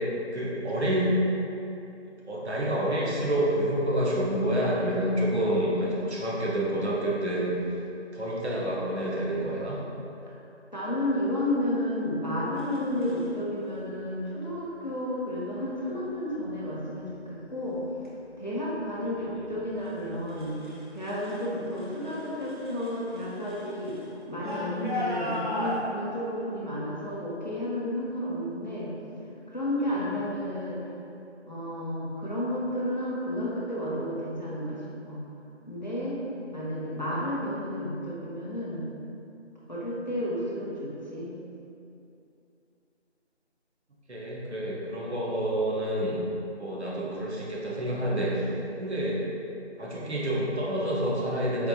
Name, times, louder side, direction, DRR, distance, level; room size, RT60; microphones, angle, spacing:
voice 1, 0.3-1.1 2.3-7.5 8.1-9.8 19.1-19.5 21.9-22.1 44.1-46.2 46.6-48.4 48.8-49.2 49.8-51.7, right 1 dB, 65° right, -5 dB, 0.9 m, -28 dB
voice 2, 10.7-17.8 18.4-20.5 20.9-23.9 24.3-28.9 29.5-30.8 31.5-35.2 35.7-36.2 36.5-38.8 39.7-41.3, left 1 dB, 40° left, -7 dB, 0.6 m, -31 dB
sound 1, 12.6-13.3 14.4-14.7 15.3-15.7 16.3-16.8 17.2-21.5 21.7-25.8, left 1 dB, 45° right, 0.6 m, -38 dB
4.3 x 2.4 x 2.7 m, 2.8 s
figure-of-eight pair, 170°, 35 cm